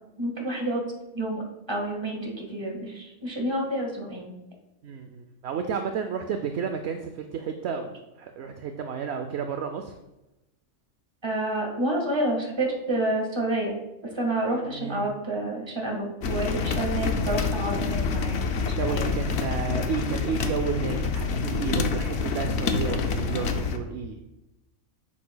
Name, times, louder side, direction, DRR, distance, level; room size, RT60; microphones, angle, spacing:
voice 1, 0.2-0.8 1.1-4.3 11.2-13.7 14.1-18.4 18.9-19.1, right 1 dB, 20° right, -1 dB, 1.5 m, -29 dB
voice 2, 4.8-9.9 14.7-15.1 18.8-24.2, right 6 dB, 65° right, 6 dB, 0.7 m, -32 dB
sound 1, 16.2-23.8, left 4 dB, 60° left, 0.8 m, -27 dB
8.6 x 7.3 x 2.2 m, 0.97 s
omnidirectional pair, 1.4 m